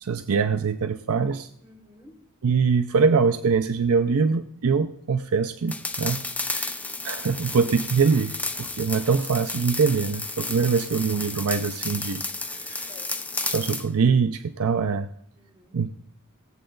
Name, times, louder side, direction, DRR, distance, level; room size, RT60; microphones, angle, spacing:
voice 1, 0.0-1.5 2.4-6.2 6.5-12.2 12.5-12.9 13.5-15.1 15.7-15.9, right 5 dB, 70° right, 10 dB, 0.5 m, -23 dB
voice 2, 1.6-2.1 10.4-11.1 12.9-13.3 15.3-15.8, left 1 dB, 25° right, -5 dB, 6.3 m, -52 dB
sound 1, 5.7-13.9, left 3 dB, 5° left, 0.5 m, -32 dB
18.0 x 7.7 x 3.8 m, 0.68 s
head